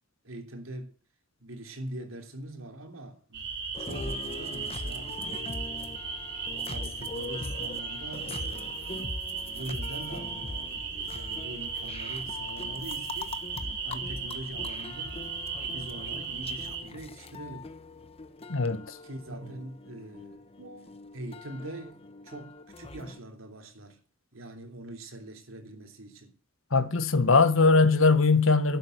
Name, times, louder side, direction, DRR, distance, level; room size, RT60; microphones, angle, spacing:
voice 1, 0.2-0.9 1.4-3.5 3.8-5.2 6.7-9.0 9.5-13.4 13.8-15.3 15.6-17.7 19.0-24.0 24.3-26.3, right 1 dB, 85° right, 3.3 m, -43 dB
sound 1, 3.3-16.8, right 5 dB, 60° right, 4.0 m, -36 dB
sound 2, 3.7-23.2, left 2 dB, 30° left, 1.0 m, -42 dB
voice 2, 18.5-19.0 26.7-28.8, left 4 dB, 75° left, 1.4 m, -21 dB
12.0 x 9.2 x 7.9 m
head